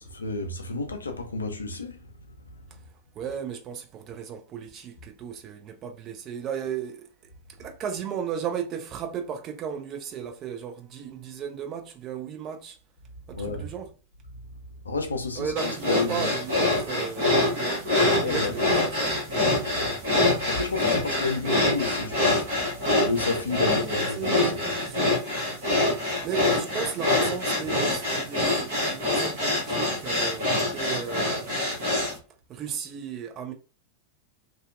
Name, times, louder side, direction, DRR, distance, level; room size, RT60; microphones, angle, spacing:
voice 1, 0.0-2.0 13.3-13.7 14.8-15.5 15.8-16.3 18.2-18.8 19.4-20.0 20.4-22.6 23.0-24.7, left 3 dB, 75° left, 0.4 m, -31 dB
voice 2, 3.2-7.0 7.6-12.8 13.3-13.9 15.4-17.8 18.2-19.2 23.6-25.1 26.2-31.7 32.5-33.5, right 8 dB, 30° right, 0.5 m, -35 dB
sound 1, 15.6-32.2, left 2 dB, 55° right, 1.0 m, -25 dB
2.6 x 2.1 x 2.3 m
figure-of-eight pair, 90°, 0 cm